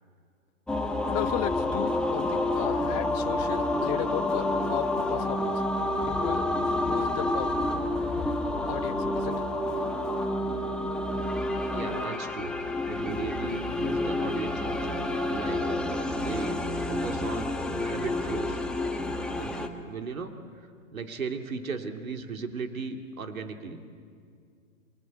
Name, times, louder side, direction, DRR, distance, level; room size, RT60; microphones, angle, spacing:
sound 1, 0.7-19.7, left 1 dB, ahead, 1.4 m, -29 dB
voice 1, 1.1-5.6 6.1-6.4 6.8-7.5 8.7-9.5, left 15 dB, 30° left, 10 dB, 1.0 m, -35 dB
voice 2, 11.7-15.0 15.3-15.7 16.3-17.5 17.8-18.6 19.4-20.3 20.9-23.8, right 5 dB, 85° right, 5 dB, 2.5 m, -36 dB
28.0 x 23.0 x 8.5 m, 2.2 s
hypercardioid pair, 125°, 40 cm